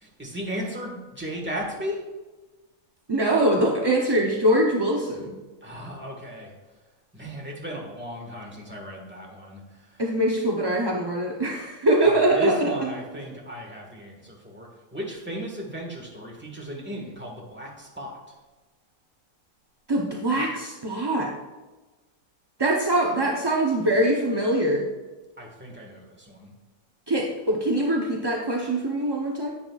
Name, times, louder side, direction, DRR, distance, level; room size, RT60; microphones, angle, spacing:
voice 1, 0.0-2.0 5.6-6.5 7.1-10.0 12.3-18.2 25.4-26.5, equal, 5° right, -1 dB, 1.5 m, -35 dB
voice 2, 3.1-5.3 10.0-12.9 19.9-21.3 22.6-24.9 27.1-29.5, right 1 dB, 30° right, -2 dB, 0.5 m, -23 dB
10.0 x 8.7 x 2.4 m, 1.2 s
omnidirectional pair, 1.6 m